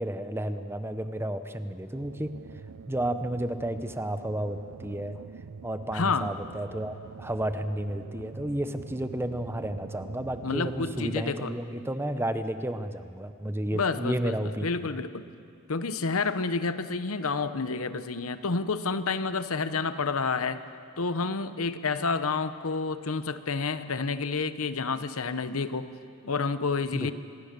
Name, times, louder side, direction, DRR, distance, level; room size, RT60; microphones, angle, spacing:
voice 1, 0.0-2.3 2.9-5.2 5.6-14.7 26.9-27.1, right 1 dB, 10° right, 10 dB, 0.8 m, -32 dB
sound 1, 1.9-11.2, right 5 dB, 70° right, 0.6 m, -45 dB
voice 2, 5.9-6.3 10.4-11.5 13.7-15.2 15.7-20.6 21.0-25.9 26.2-27.1, left 4 dB, 70° left, 12 dB, 0.9 m, -29 dB
25.5 x 20.5 x 6.8 m, 2.4 s
head